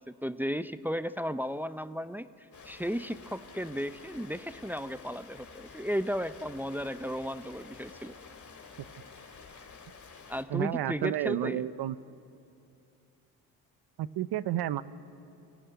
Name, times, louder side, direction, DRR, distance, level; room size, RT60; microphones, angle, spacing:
voice 1, 0.0-8.1 10.3-11.7, equal, 5° right, 13 dB, 0.6 m, -34 dB
Rain, 2.5-10.4, left 5 dB, 45° left, 2.4 m, -50 dB
voice 2, 10.5-12.0 14.0-14.8, right 12 dB, 65° right, 16 dB, 0.8 m, -31 dB
22.5 x 15.5 x 9.6 m, 2.6 s
supercardioid pair, 70°, 42 cm